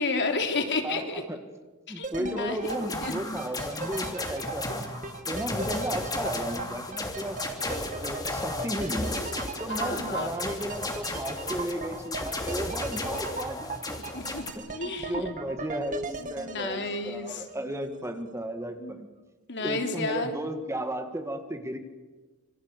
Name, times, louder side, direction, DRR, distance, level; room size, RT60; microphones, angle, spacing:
voice 1, 0.0-1.2 1.9-2.7 3.0-3.1 9.8-10.3 14.1-15.3 16.2-17.4 18.8-18.9 19.5-20.3, left 3 dB, 55° left, 5 dB, 3.4 m, -31 dB
voice 2, 0.8-1.4 1.9-4.9 5.3-9.1 9.6-13.7 14.7-19.1 19.6-21.8, right 1 dB, 15° right, 7 dB, 1.7 m, -34 dB
sound 1, 2.0-18.0 18.3-18.4, right 4 dB, 35° right, 2.0 m, -39 dB
sound 2, 2.6-14.5, left 2 dB, 15° left, 2.9 m, -34 dB
26.5 x 25.0 x 8.2 m, 1.3 s
head